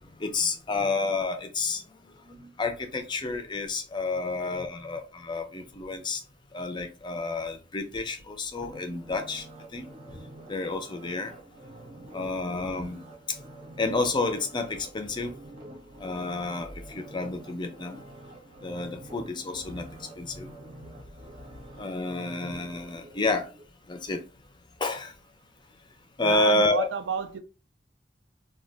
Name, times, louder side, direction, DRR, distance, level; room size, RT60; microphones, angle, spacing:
voice 1, 0.2-1.8 2.3-6.2 6.5-9.4 9.7-10.2 10.5-11.3 12.1-13.0 13.8-15.3 16.0-18.0 18.6-20.5 21.8-23.5 23.9-24.2 24.8-25.1 26.2-26.9, left 2 dB, 25° left, 0.4 m, -30 dB
sound 1, 8.6-23.7 24.1-24.2, right 1 dB, 35° right, 0.6 m, -48 dB
voice 2, 26.2-27.4, right 5 dB, 85° right, 0.4 m, -31 dB
2.3 x 2.1 x 3.8 m
head